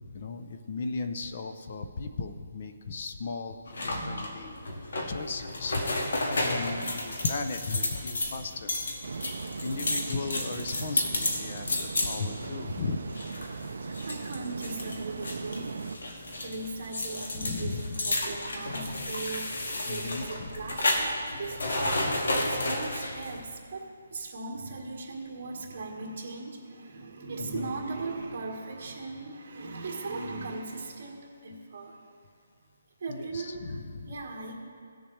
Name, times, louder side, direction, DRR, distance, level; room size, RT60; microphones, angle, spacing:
voice 1, 0.1-4.5 5.1-5.9 6.4-8.8 9.6-13.0 17.3-17.9 19.9-20.5 27.4-27.7 33.1-34.1, left 4 dB, 40° left, 7 dB, 0.5 m, -36 dB
sound 1, 3.7-23.4, left 1 dB, 75° left, 1.8 m, -32 dB
sound 2, 9.0-16.0, right 4 dB, 60° right, 0.4 m, -39 dB
voice 2, 13.8-19.5 19.9-32.1 33.0-33.7 34.1-34.5, right 3 dB, 40° right, 0 dB, 1.7 m, -38 dB
18.0 x 7.0 x 3.3 m, 2.1 s
hypercardioid pair, 170°, 0 cm